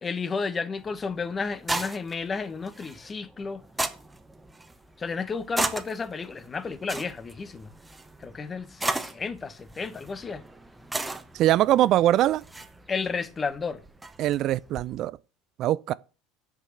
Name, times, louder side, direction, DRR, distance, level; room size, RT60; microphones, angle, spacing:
voice 1, 0.0-3.6 5.0-7.7 8.2-10.4 12.9-13.8, left 5 dB, 25° left, 1.1 m, -32 dB
Dig a hole, 0.8-15.0, right 2 dB, 10° right, 1.2 m, -36 dB
voice 2, 11.3-12.4 14.2-15.1 15.6-15.9, right 13 dB, 50° right, 0.4 m, -22 dB
8.3 x 5.4 x 7.8 m
hypercardioid pair, 75°, 0 cm